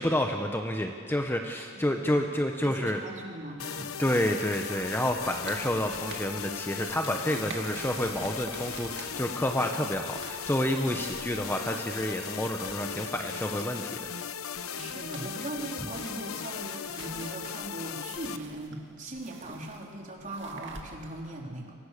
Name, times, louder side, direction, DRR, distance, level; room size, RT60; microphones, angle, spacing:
voice 1, 0.0-3.0 4.0-13.9, left 1 dB, 10° left, 4 dB, 1.1 m, -29 dB
voice 2, 1.9-2.3 2.6-3.9 14.7-21.8, right 1 dB, 35° right, 0 dB, 3.9 m, -39 dB
sound 1, 3.6-18.4, left 7 dB, 85° left, 0.9 m, -38 dB
sound 2, 4.4-21.3, right 4 dB, 60° right, 2.6 m, -48 dB
29.0 x 24.5 x 6.8 m, 2.1 s
head